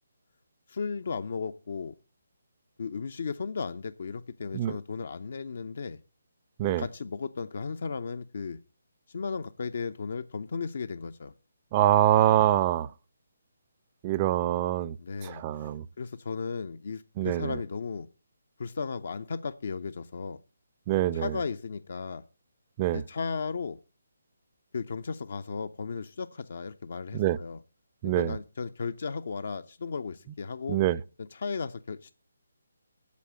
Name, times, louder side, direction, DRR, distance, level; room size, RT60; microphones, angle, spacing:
voice 1, 0.7-1.9 2.8-6.0 6.8-8.6 9.1-11.3 15.0-15.7 16.0-18.1 18.6-20.4 21.1-22.2 22.9-23.8 24.7-27.6 28.0-30.8 31.2-32.1, left 5 dB, 55° left, 0.6 m, -35 dB
voice 2, 11.7-12.9 14.0-15.0 15.2-15.8 17.2-17.6 20.9-21.3 22.8-23.0 27.1-27.4 28.0-28.4 30.7-31.0, right 13 dB, 25° right, 0.4 m, -24 dB
8.4 x 7.2 x 7.8 m
figure-of-eight pair, 145°, 0 cm